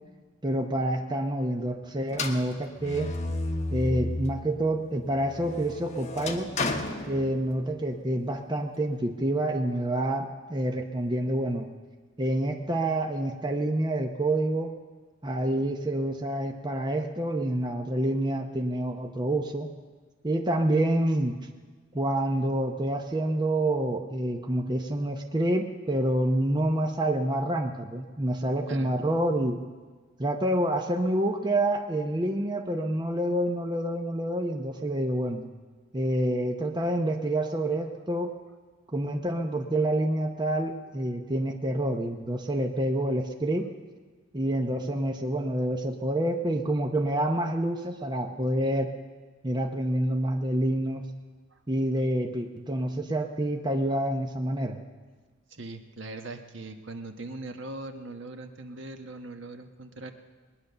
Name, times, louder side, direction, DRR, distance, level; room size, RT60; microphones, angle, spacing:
voice 1, 0.4-3.1 3.7-6.5 7.1-11.7 12.2-14.7 15.2-19.7 20.2-21.4 21.9-29.6 30.2-35.5 35.9-38.3 38.9-43.7 44.3-48.9 49.4-51.0 51.7-54.8, right 1 dB, 20° right, 3 dB, 0.8 m, -27 dB
sound 1, 2.1-4.5 5.0-7.8, left 2 dB, 35° left, 1.2 m, -33 dB
voice 2, 55.5-60.1, right 2 dB, 60° right, 6 dB, 1.2 m, -40 dB
20.0 x 10.0 x 6.8 m, 1.4 s
head